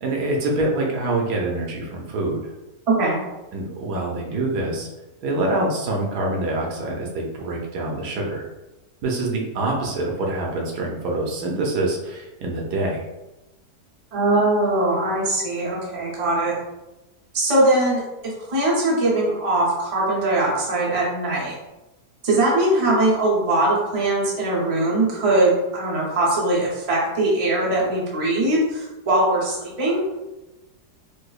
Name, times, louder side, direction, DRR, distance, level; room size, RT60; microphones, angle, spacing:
voice 1, 0.0-2.4 3.5-4.9 5.2-8.5 9.0-13.0, right 2 dB, 85° right, -1 dB, 1.3 m, -25 dB
voice 2, 2.9-3.2 14.1-16.5 17.3-21.5 22.2-30.1, right 2 dB, 30° right, -5 dB, 0.7 m, -21 dB
4.8 x 2.0 x 2.4 m, 1.0 s
omnidirectional pair, 1.7 m